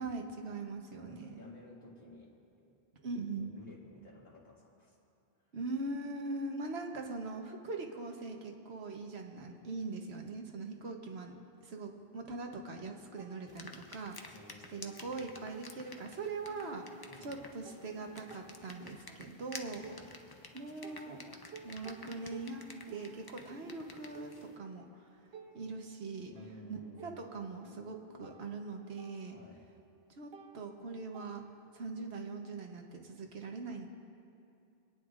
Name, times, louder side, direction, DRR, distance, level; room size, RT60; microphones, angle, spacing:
voice 1, 0.0-1.5 3.0-3.6 5.5-11.3 11.6-14.3 14.7-19.8 20.5-21.2 21.6-22.6 22.9-25.1 25.5-26.3 26.7-29.4 30.2-31.4 31.7-33.9, right 3 dB, 85° right, 3 dB, 1.3 m, -41 dB
voice 2, 0.9-2.3 2.6-2.8 3.2-4.9 14.3-15.3 16.3-16.4 17.1-17.5 19.8-20.1 26.3-27.2 29.3-29.6, equal, 70° left, -5 dB, 2.4 m, -54 dB
sound 1, 13.2-14.3 14.6-16.1 16.5-20.5 20.8-31.9, right 4 dB, 70° right, 1.0 m, -56 dB
sound 2, 13.5-24.6, left 3 dB, 25° left, 0.6 m, -52 dB
29.0 x 9.7 x 2.5 m, 2.6 s
omnidirectional pair, 1.1 m